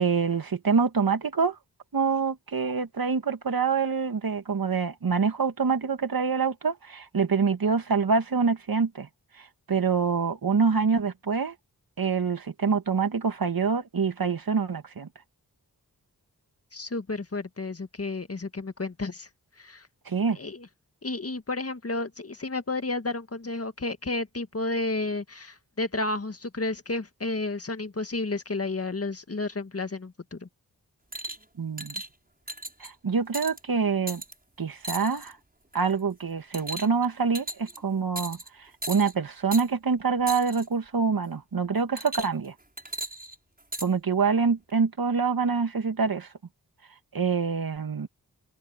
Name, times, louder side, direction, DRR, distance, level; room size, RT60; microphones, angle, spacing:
voice 1, 0.0-1.6 1.9-9.1 9.4-11.5 12.0-15.1 20.1-20.4 31.6-31.9 32.8-34.2 34.6-35.4 35.7-42.5 43.8-46.3 47.1-48.1, right 5 dB, 70° right, 2.3 m, -26 dB
voice 2, 16.7-19.3 19.6-19.9 20.4-20.7 21.0-30.5, left 2 dB, 40° left, 1.9 m, -31 dB
sound 1, 31.1-31.4 31.8-32.1 32.5-32.9 33.3-33.6 34.1-34.3 34.8-35.3 35.7-36.0 36.5-37.1 37.4-37.8 38.2-38.5 38.8-39.1 39.5-39.7 40.3-40.7 42.0-42.5 42.8-43.9 44.7-44.8, right 1 dB, 25° right, 6.7 m, -36 dB
cardioid pair, 40°, 37 cm